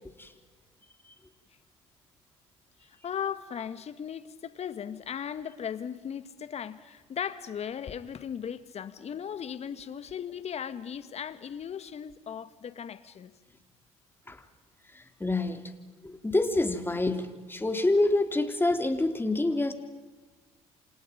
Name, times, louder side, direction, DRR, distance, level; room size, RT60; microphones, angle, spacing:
voice 1, 2.9-13.3, left 8 dB, 50° left, 12 dB, 1.9 m, -37 dB
voice 2, 14.9-15.6 16.0-19.7, left 2 dB, 15° left, 7 dB, 3.4 m, -27 dB
29.5 x 27.0 x 5.3 m, 1.3 s
hypercardioid pair, 60°, 14 cm